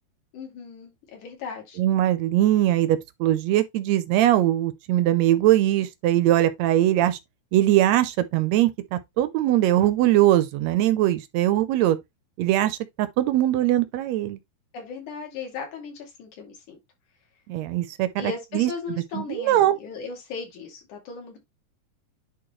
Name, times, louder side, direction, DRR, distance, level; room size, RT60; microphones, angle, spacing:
voice 1, 0.3-1.8 14.7-16.8 18.2-21.4, left 5 dB, 65° left, 3.8 m, -37 dB
voice 2, 1.8-7.2 7.5-12.0 12.4-14.4 17.5-18.7 19.1-19.7, right 13 dB, 80° right, 1.6 m, -21 dB
10.5 x 3.8 x 3.1 m
omnidirectional pair, 3.8 m